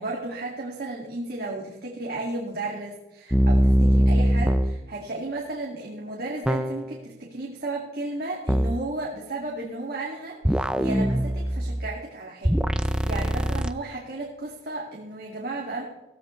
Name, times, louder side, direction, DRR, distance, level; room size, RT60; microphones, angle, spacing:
voice 1, 0.0-15.8, right 2 dB, 60° right, -3 dB, 2.3 m, -34 dB
sound 1, 3.3-4.8 6.5-7.0 8.5-8.8 10.4-12.0 12.4-13.7, right 1 dB, 5° right, 0.5 m, -22 dB
16.0 x 16.0 x 3.2 m, 1.0 s
head